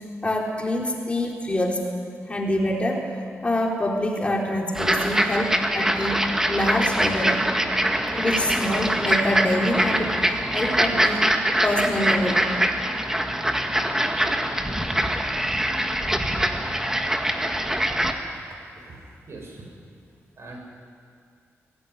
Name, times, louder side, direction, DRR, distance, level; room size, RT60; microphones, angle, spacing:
voice 1, 0.2-1.9 2.3-7.5 8.1-11.3 11.6-12.4, left 1 dB, 20° left, -1 dB, 3.9 m, -26 dB
sound 1, 4.8-18.1, right 1 dB, 10° right, 1.9 m, -23 dB
voice 2, 18.8-19.7 20.4-20.6, right 2 dB, 60° right, 1 dB, 6.7 m, -42 dB
21.5 x 16.5 x 9.7 m, 2.3 s
cardioid pair, 80°, 5 cm